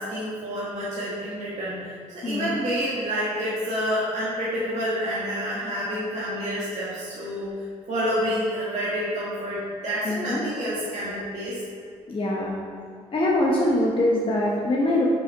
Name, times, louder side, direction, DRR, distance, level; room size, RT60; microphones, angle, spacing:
voice 1, 0.0-7.5 7.9-11.6, equal, 55° right, -8 dB, 1.8 m, -28 dB
voice 2, 2.2-2.6 10.0-10.4 12.1-12.6 13.1-15.0, left 1 dB, 35° left, -4 dB, 1.1 m, -23 dB
6.4 x 4.9 x 4.7 m, 2.4 s
supercardioid pair, 65°, 15 cm